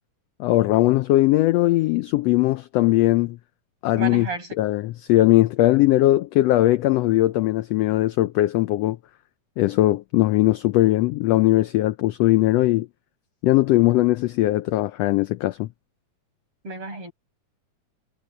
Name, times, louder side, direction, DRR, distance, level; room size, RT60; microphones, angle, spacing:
voice 1, 0.4-3.4 3.8-4.3 4.6-9.0 9.6-12.9 13.4-15.7, left 16 dB, 80° left, 1.5 m, -19 dB
voice 2, 3.9-4.6 16.6-17.1, right 3 dB, 45° right, 8.8 m, -32 dB
omnidirectional pair, 3.4 m